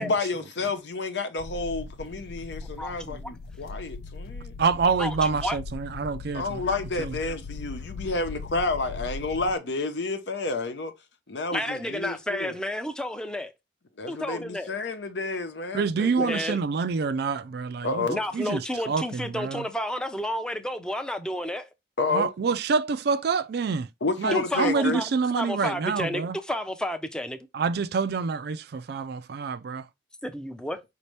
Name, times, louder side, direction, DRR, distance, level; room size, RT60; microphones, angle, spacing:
voice 1, 0.0-4.5 6.3-10.9 11.3-12.5 14.0-16.4 17.8-18.2 22.0-22.3 24.0-25.0, left 3 dB, 75° left, 0.8 m, -30 dB
sound 1, 1.4-9.6, left 4 dB, 55° left, 0.3 m, -39 dB
voice 2, 2.8-3.3 5.0-5.6 11.5-13.5 14.1-14.7 16.2-16.6 18.1-21.7 24.3-27.4 30.2-30.8, left 1 dB, 5° left, 0.5 m, -31 dB
voice 3, 4.6-6.6 7.0-7.2 15.7-18.1 18.3-18.6 18.9-19.7 22.1-23.9 24.2-26.4 27.5-29.9, right 5 dB, 60° right, 0.4 m, -27 dB
5.2 x 2.8 x 3.2 m
head